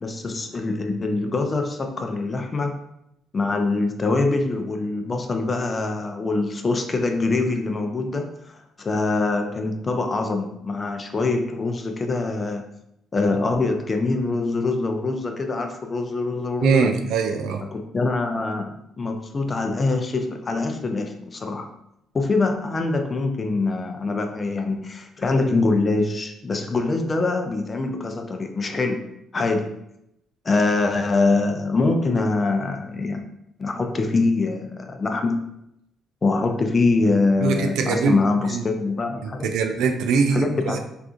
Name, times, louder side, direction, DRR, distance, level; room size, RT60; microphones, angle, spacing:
voice 1, 0.0-2.8 3.3-12.7 13.1-16.9 17.6-21.7 22.1-29.7 30.4-33.2 33.6-35.4 36.2-39.5 40.3-40.8, left 3 dB, 35° left, 5 dB, 0.5 m, -24 dB
voice 2, 16.6-17.6 37.4-38.1 38.5-38.6 39.4-40.5 40.7-40.8, right 5 dB, 70° right, 5 dB, 0.3 m, -22 dB
3.5 x 2.4 x 2.4 m, 0.80 s
hypercardioid pair, 50°, 0 cm